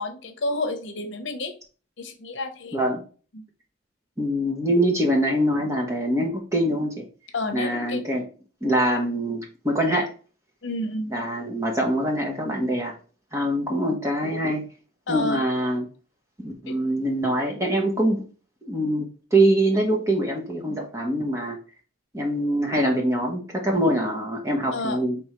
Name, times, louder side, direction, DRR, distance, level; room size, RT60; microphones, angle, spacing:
voice 1, 0.0-1.5 2.0-2.8 3.3-3.4 7.3-8.1 10.6-11.1 15.1-15.5 16.7-16.8 24.7-25.0, left 2 dB, 70° left, 5 dB, 0.8 m, -30 dB
voice 2, 4.2-7.1 7.5-8.2 8.6-10.1 11.1-12.9 13.3-14.6 15.1-15.9 16.4-18.2 18.6-21.6 22.1-25.2, right 1 dB, 15° right, 0 dB, 0.9 m, -24 dB
4.7 x 3.4 x 3.0 m, 0.38 s
head